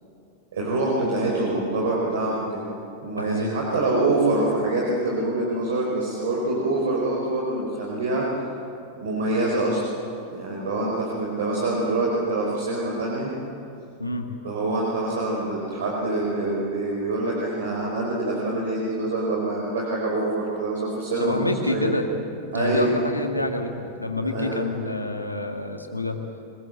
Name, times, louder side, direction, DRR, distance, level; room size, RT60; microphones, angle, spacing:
voice 1, 0.5-2.6 3.0-8.3 9.0-9.9 10.3-13.3 14.4-21.9 22.5-22.9 24.2-24.7, right 2 dB, 60° right, -3 dB, 4.7 m, -25 dB
voice 2, 3.2-3.6 14.0-14.5 21.2-22.1 22.5-26.4, left 2 dB, 85° left, 4 dB, 2.0 m, -28 dB
24.5 x 21.0 x 7.9 m, 2.6 s
figure-of-eight pair, 90°, 0 cm